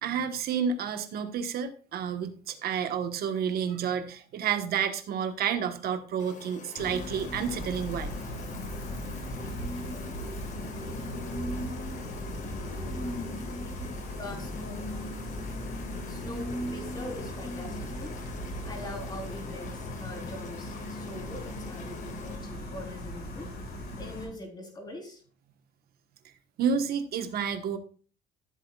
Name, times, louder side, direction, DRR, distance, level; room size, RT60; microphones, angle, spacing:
voice 1, 0.0-8.1 26.6-27.8, right 7 dB, 65° right, 8 dB, 1.3 m, -30 dB
sound 1, 6.2-22.4, left 7 dB, 45° left, 1.2 m, -48 dB
Gull seagull, 6.8-24.2, left 1 dB, 70° left, 5.6 m, -37 dB
voice 2, 14.2-14.9 16.0-23.5 24.0-25.2, left 1 dB, 25° left, 1 dB, 3.7 m, -43 dB
14.5 x 8.0 x 2.4 m, 0.41 s
cardioid pair, 110°, 17 cm